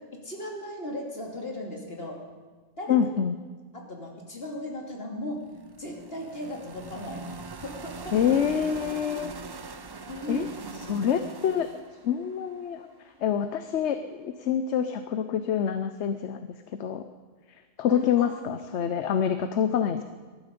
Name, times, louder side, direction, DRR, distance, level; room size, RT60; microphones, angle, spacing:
voice 1, 0.2-2.2 2.8-3.0 3.9-5.4 5.8-7.4 7.6-8.2 10.1-10.5 17.9-18.4, left 1 dB, 55° left, 0 dB, 3.0 m, -37 dB
voice 2, 2.9-3.4 8.1-9.3 10.3-10.5 10.7-11.7 12.0-12.9 13.2-16.5 16.8-17.0 17.8-20.0, left 8 dB, 75° left, 9 dB, 1.0 m, -26 dB
sound 1, 5.4-13.4, right 4 dB, 30° right, 0.4 m, -42 dB
19.0 x 13.5 x 5.3 m, 1.4 s
omnidirectional pair, 1.2 m